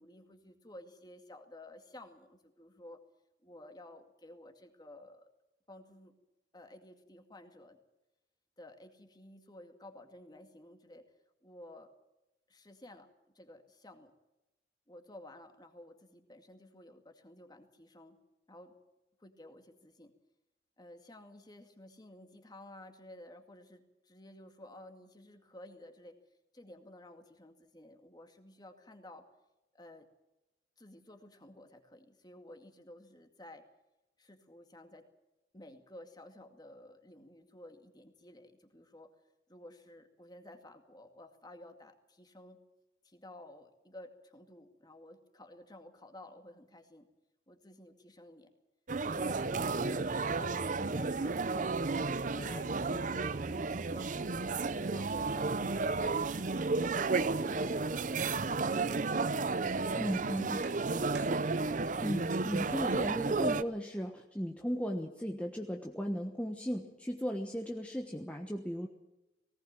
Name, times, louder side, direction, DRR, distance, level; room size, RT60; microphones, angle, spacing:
voice 1, 0.0-3.0 3.4-5.3 5.7-6.1 6.5-7.8 8.6-11.0 11.4-11.9 12.5-13.1 13.4-14.1 14.9-18.2 18.5-18.7 19.2-20.1 20.8-26.2 26.5-29.3 29.7-30.1 30.8-33.6 34.2-35.0 35.5-39.1 39.5-42.6 43.0-47.1 47.5-48.5 49.0-51.7 52.1-54.3 54.9-59.2 59.9-60.1, left 1 dB, 25° left, 6 dB, 2.2 m, -53 dB
sound 1, 48.9-63.6, right 3 dB, 45° right, 0.7 m, -32 dB
sound 2, 49.0-61.4, right 2 dB, 65° right, 1.5 m, -54 dB
voice 2, 60.0-60.7 62.0-68.9, equal, 5° left, 2 dB, 1.2 m, -36 dB
18.5 x 18.5 x 7.6 m, 0.97 s
head